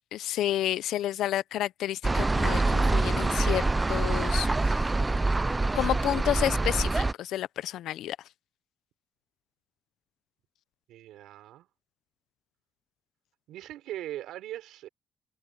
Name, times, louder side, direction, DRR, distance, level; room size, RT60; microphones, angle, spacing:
voice 1, 0.1-4.7 5.7-8.2, left 12 dB, 75° left, 0.6 m, -30 dB
sound 1, 2.0-7.1, right 2 dB, 15° right, 0.3 m, -25 dB
voice 2, 10.9-11.7 13.5-14.9, right 13 dB, 90° right, 4.5 m, -40 dB
cardioid pair, 130°, 0 cm